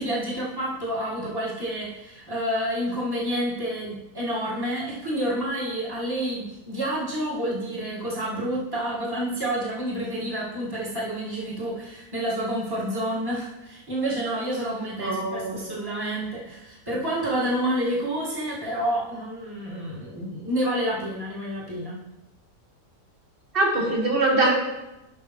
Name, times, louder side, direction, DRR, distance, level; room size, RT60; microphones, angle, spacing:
voice 1, 0.0-22.0, right 1 dB, 15° right, -6 dB, 1.8 m, -29 dB
voice 2, 15.0-15.6 23.5-24.5, right 2 dB, 35° right, -1 dB, 1.7 m, -23 dB
12.0 x 5.4 x 3.1 m, 0.94 s
omnidirectional pair, 1.8 m